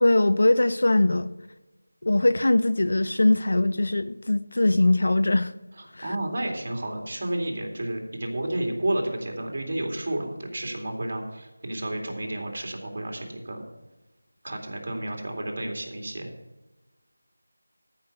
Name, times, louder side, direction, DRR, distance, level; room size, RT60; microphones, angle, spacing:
voice 1, 0.0-1.3 2.0-5.5 6.0-6.2, left 2 dB, 65° left, 13 dB, 0.7 m, -21 dB
voice 2, 6.0-13.6 14.4-16.3, right 1 dB, 45° right, 2 dB, 2.4 m, -31 dB
13.5 x 5.7 x 6.7 m, 1.1 s
figure-of-eight pair, 170°, 0 cm